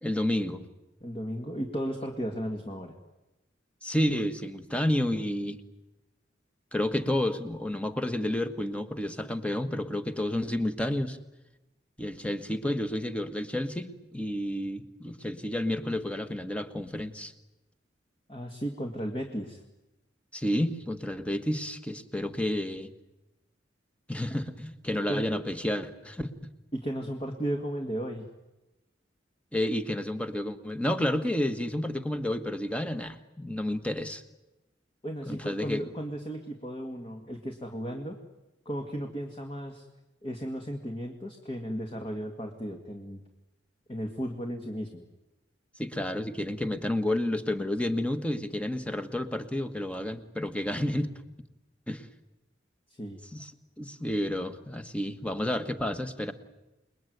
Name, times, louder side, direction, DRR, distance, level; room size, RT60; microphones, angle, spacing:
voice 1, 0.0-0.7 3.8-5.6 6.7-11.2 12.0-17.3 20.3-22.9 24.1-26.3 29.5-34.2 35.3-35.9 45.8-51.1 51.9-52.0 53.3-53.5 53.8-56.3, left 1 dB, 5° left, 10 dB, 1.4 m, -30 dB
voice 2, 1.0-3.0 18.3-19.6 25.1-25.3 26.7-28.3 35.0-38.2 38.7-39.9 40.2-43.2 43.9-45.0 52.9-53.2, equal, 30° left, 3 dB, 2.1 m, -35 dB
28.5 x 21.0 x 9.4 m, 1.0 s
head